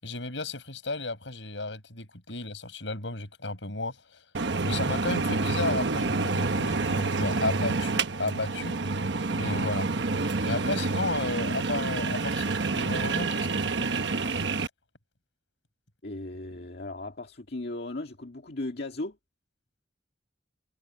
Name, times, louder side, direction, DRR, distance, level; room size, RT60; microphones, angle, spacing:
voice 1, 0.0-4.2 4.6-9.0 9.3-9.9 10.4-14.0, left 3 dB, 80° left, 6.3 m, -33 dB
sound 1, 4.3-14.7, right 3 dB, 70° right, 1.1 m, -28 dB
voice 2, 16.0-19.2, left 2 dB, 60° left, 2.0 m, -36 dB
head